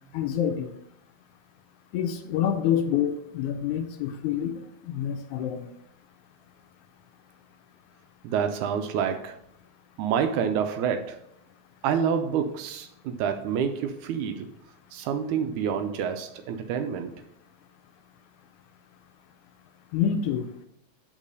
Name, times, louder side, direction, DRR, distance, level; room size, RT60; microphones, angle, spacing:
voice 1, 0.1-0.7 1.9-5.7 19.9-20.5, left 9 dB, 80° left, 7 dB, 1.9 m, -27 dB
voice 2, 8.2-9.4 10.0-11.2 11.8-14.5 14.9-17.1, right 7 dB, 80° right, 7 dB, 2.0 m, -28 dB
7.3 x 4.5 x 5.3 m, 0.75 s
omnidirectional pair, 3.7 m